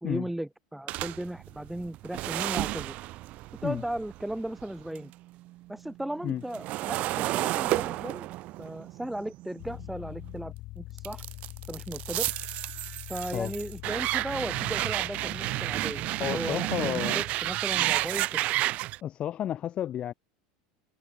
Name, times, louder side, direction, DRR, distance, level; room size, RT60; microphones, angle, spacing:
voice 1, 0.0-2.9 3.6-5.1 5.7-8.3 8.6-11.2 11.7-12.3 13.1-16.0 16.3-18.4, right 1 dB, 5° right, 1.1 m, -36 dB
sound 1, 0.9-5.1 5.5-10.4 11.0-19.0, right 17 dB, 50° right, 0.4 m, -31 dB
sound 2, 9.6-18.2, left 19 dB, 55° left, 0.9 m, -45 dB
voice 2, 16.2-17.2 19.0-20.1, left 11 dB, 35° left, 0.5 m, -31 dB
supercardioid pair, 110°, 3 cm